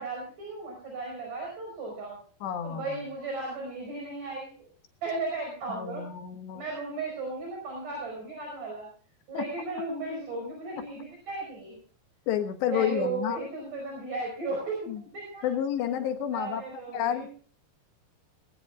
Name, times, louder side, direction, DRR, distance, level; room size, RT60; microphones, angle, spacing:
voice 1, 0.0-2.2 2.6-4.5 5.0-6.0 6.5-8.9 9.3-11.8 12.7-14.9 15.1-15.5 16.3-17.3, right 3 dB, 50° right, 0 dB, 6.7 m, -35 dB
voice 2, 2.4-3.0 5.7-6.6 9.3-9.4 12.3-13.4 14.9-15.0 15.4-16.6 16.9-17.3, left 10 dB, 90° left, 5 dB, 3.7 m, -30 dB
21.5 x 17.5 x 2.4 m, 0.42 s
omnidirectional pair, 4.8 m